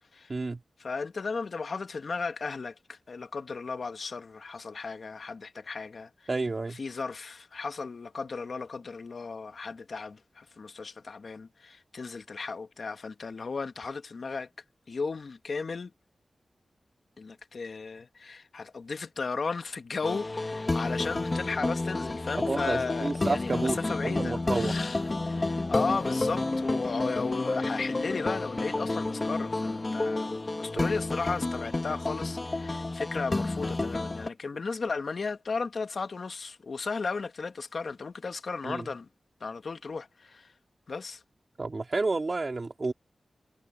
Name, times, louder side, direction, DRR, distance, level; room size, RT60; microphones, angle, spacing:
voice 1, 0.8-6.1 6.7-14.5 14.9-15.9 17.2-25.0 25.3-39.1 39.4-40.5 40.9-41.2, left 4 dB, 65° left, 1.7 m, -35 dB
voice 2, 6.3-6.8 22.5-23.8 24.0-24.7 30.8-30.9 38.6-38.9 41.6-42.9, right 3 dB, 45° right, 2.7 m, -30 dB
sound 1, 20.0-34.3, left 2 dB, 35° left, 1.5 m, -30 dB
wide cardioid pair, 80°, 0 cm